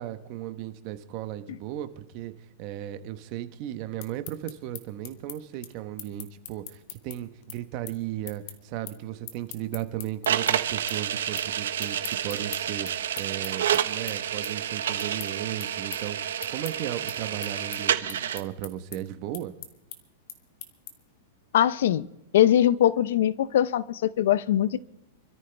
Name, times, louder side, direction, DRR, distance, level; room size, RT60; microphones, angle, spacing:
voice 1, 0.0-2.3 2.6-19.5, right 12 dB, 35° right, 11 dB, 1.2 m, -36 dB
sound 1, 3.8-10.5 10.9-11.5 11.8-21.2, left 11 dB, 45° left, 1.9 m, -42 dB
sound 2, 10.3-18.4, right 9 dB, 90° right, 1.2 m, -29 dB
voice 2, 21.5-22.1 22.3-24.8, left 11 dB, 65° left, 18 dB, 0.7 m, -21 dB
26.5 x 14.0 x 3.5 m, 0.90 s
supercardioid pair, 165°, 0 cm